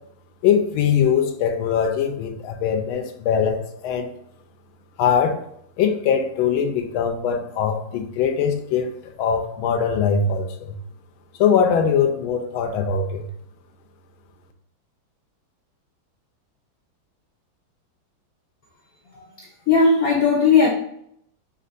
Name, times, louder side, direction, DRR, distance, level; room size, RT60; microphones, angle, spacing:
voice 1, 0.4-4.1 5.0-5.4 5.8-8.9 9.2-10.8 11.4-13.3, left 7 dB, 85° left, 5 dB, 1.4 m, -21 dB
voice 2, 19.1-20.7, left 4 dB, 65° left, 0 dB, 0.9 m, -18 dB
5.4 x 2.9 x 2.5 m, 0.72 s
omnidirectional pair, 2.2 m